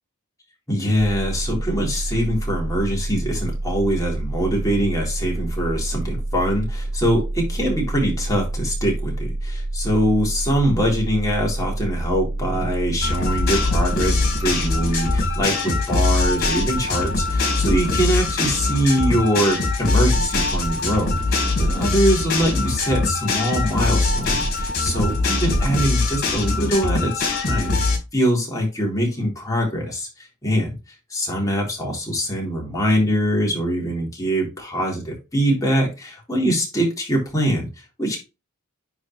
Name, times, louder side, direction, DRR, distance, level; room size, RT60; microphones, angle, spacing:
voice 1, 0.7-30.8 31.1-38.2, equal, 15° left, -2 dB, 3.6 m, -23 dB
sound 1, 1.0-15.4, right 2 dB, 65° right, 2.4 m, -28 dB
sound 2, 13.0-28.0, left 3 dB, 50° left, 4.1 m, -22 dB
9.6 x 4.4 x 3.1 m, 0.26 s
head